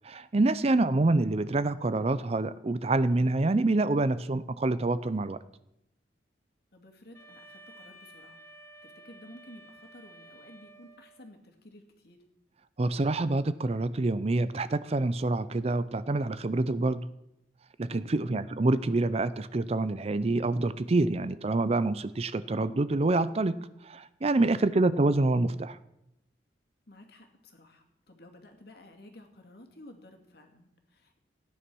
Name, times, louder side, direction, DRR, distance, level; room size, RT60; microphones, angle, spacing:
voice 1, 0.0-5.4 12.8-17.0 17.8-23.6 23.8-25.8, right 2 dB, 35° right, 15 dB, 0.5 m, -26 dB
voice 2, 6.7-8.4 8.8-12.2 18.1-18.4 24.7-25.0 26.9-31.2, left 1 dB, 60° left, 3 dB, 2.4 m, -52 dB
Wind instrument woodwind instrument, 7.1-11.3, right 1 dB, 20° left, 2.5 m, -53 dB
15.5 x 10.0 x 6.2 m, 0.84 s
head